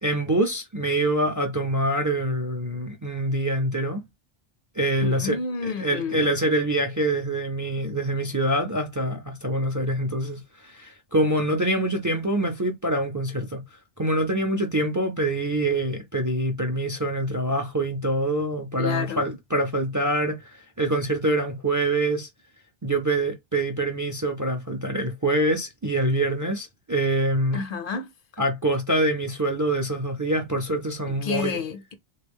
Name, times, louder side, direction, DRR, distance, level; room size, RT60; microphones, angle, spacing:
voice 1, 0.0-4.0 4.7-5.4 5.6-13.6 14.0-22.3 22.8-27.6 28.4-31.6, right 1 dB, 25° right, 0.4 m, -25 dB
voice 2, 5.0-6.4 18.8-19.3 27.5-28.1 31.2-31.9, left 5 dB, 65° left, 0.7 m, -30 dB
3.3 x 2.2 x 3.5 m
omnidirectional pair, 1.0 m